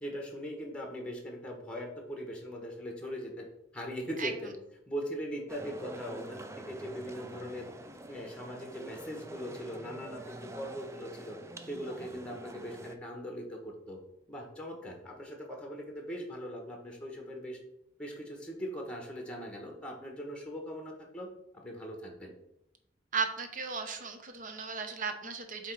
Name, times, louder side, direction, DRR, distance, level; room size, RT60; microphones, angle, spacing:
voice 1, 0.0-3.5 3.7-4.5 4.9-7.7 8.1-11.4 11.6-14.0 14.3-17.6 18.0-22.3, equal, 5° left, 1 dB, 1.0 m, -40 dB
sound 1, 5.5-13.0, right 1 dB, 15° right, 0.4 m, -47 dB
voice 2, 23.1-25.7, right 4 dB, 45° right, 7 dB, 0.8 m, -35 dB
7.8 x 2.9 x 4.5 m, 0.83 s
head